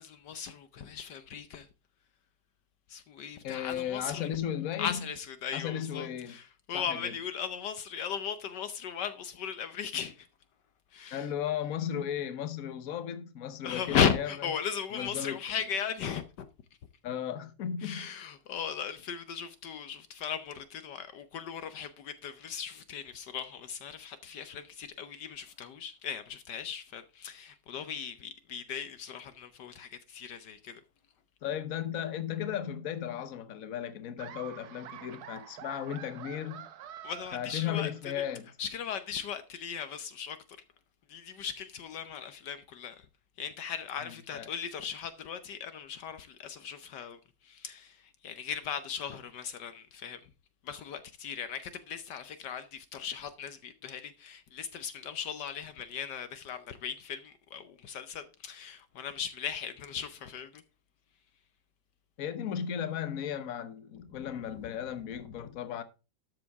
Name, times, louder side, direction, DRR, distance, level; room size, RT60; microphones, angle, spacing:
voice 1, 0.0-1.7 2.9-4.3 4.8-10.3 10.9-11.3 13.6-16.5 17.8-30.8 37.0-38.3 38.6-40.4 41.1-43.1 43.4-50.3 50.6-60.6 64.1-64.3, left 7 dB, 70° left, 1.4 m, -37 dB
voice 2, 3.4-5.0 5.5-6.4 6.7-7.1 11.1-14.3 14.9-15.4 17.0-18.0 31.4-36.7 37.3-38.5 44.0-44.5 62.2-65.8, left 9 dB, 55° left, 1.3 m, -35 dB
Laughter, 34.2-38.2, right 10 dB, 65° right, 1.3 m, -47 dB
13.0 x 7.4 x 3.5 m
omnidirectional pair, 2.0 m